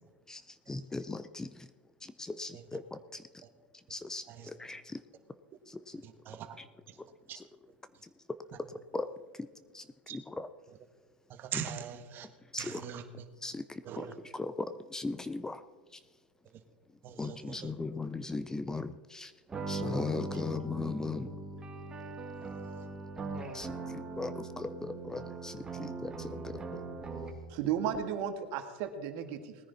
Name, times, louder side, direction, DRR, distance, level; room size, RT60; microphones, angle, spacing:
voice 1, 0.7-1.5 2.0-3.2 3.9-5.0 5.7-6.0 6.6-6.7 7.3-7.4 8.9-9.1 9.7-9.8 10.1-10.5 11.5-11.6 12.5-12.8 13.4-14.1 14.3-15.6 17.2-19.3 19.7-21.3 23.5-23.7 24.2-26.8, left 3 dB, 10° left, 13 dB, 0.5 m, -38 dB
voice 2, 6.0-6.6 7.3-7.4 10.1-10.2 11.3-12.3 12.6-13.2 13.8-14.1 17.0-17.7, right 10 dB, 40° right, 8 dB, 1.5 m, -41 dB
sound 1, 19.5-27.5, right 3 dB, 15° right, 2.0 m, -40 dB
voice 3, 27.5-29.6, right 9 dB, 55° right, 7 dB, 1.7 m, -34 dB
19.5 x 10.0 x 4.1 m, 1.4 s
hypercardioid pair, 110°, 6 cm